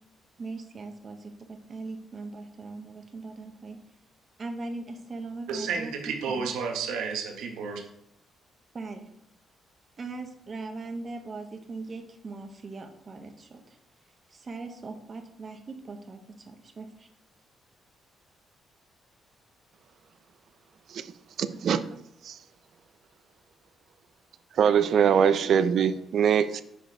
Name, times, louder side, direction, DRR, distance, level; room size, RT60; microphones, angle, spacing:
voice 1, 0.4-3.8 4.4-6.5 8.7-9.1 10.0-13.8 14.3-17.1, right 3 dB, 40° right, 0.9 m, -40 dB
voice 2, 5.5-7.8, right 5 dB, 85° right, 1.1 m, -31 dB
voice 3, 21.4-21.8 22.2-22.4 24.6-26.6, right 7 dB, 65° right, 0.5 m, -22 dB
6.1 x 5.0 x 3.8 m
cardioid pair, 90°, 0 cm